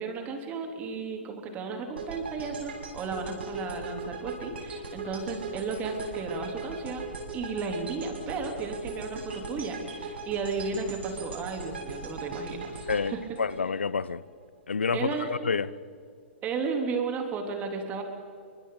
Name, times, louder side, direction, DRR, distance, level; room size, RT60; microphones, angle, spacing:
voice 1, 0.0-7.0 7.3-13.2 14.9-15.3 16.4-18.0, right 4 dB, 25° right, 3.6 m, -34 dB
sound 1, 2.0-14.1, right 3 dB, 65° right, 6.4 m, -39 dB
voice 2, 12.9-14.2 14.7-15.7, left 5 dB, 75° left, 0.8 m, -29 dB
29.0 x 25.0 x 4.1 m
figure-of-eight pair, 110°, 6 cm